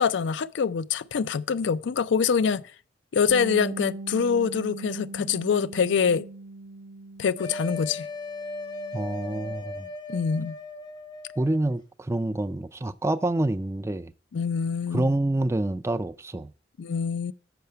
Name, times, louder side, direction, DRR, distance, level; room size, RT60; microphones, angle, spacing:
voice 1, 0.0-2.6 3.1-6.2 7.2-8.1 10.1-10.6 14.3-15.1 16.8-17.3, left 6 dB, 75° left, 0.4 m, -25 dB
Bass guitar, 3.3-8.0 8.3-9.5, right 2 dB, 80° right, 0.6 m, -41 dB
sound 1, 7.4-11.8, left 2 dB, 25° left, 0.6 m, -37 dB
voice 2, 8.9-9.9 11.4-14.1 14.9-16.5, right 1 dB, 15° right, 0.3 m, -27 dB
6.8 x 5.8 x 6.5 m
head